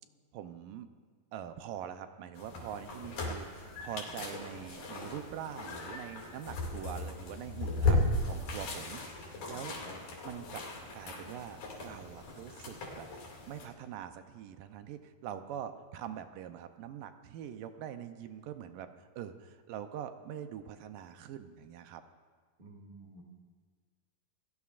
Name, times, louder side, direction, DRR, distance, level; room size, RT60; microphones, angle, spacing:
voice 1, 0.3-0.9 1.3-9.8 10.2-10.7 10.9-13.1 13.5-22.0, right 9 dB, 80° right, 8 dB, 2.4 m, -44 dB
sound 1, 2.4-13.7, left 2 dB, 70° left, 4.0 m, -36 dB
voice 2, 9.3-9.9 22.6-23.2, right 1 dB, 15° right, -1 dB, 2.1 m, -52 dB
29.0 x 16.5 x 2.5 m, 1.5 s
omnidirectional pair, 3.9 m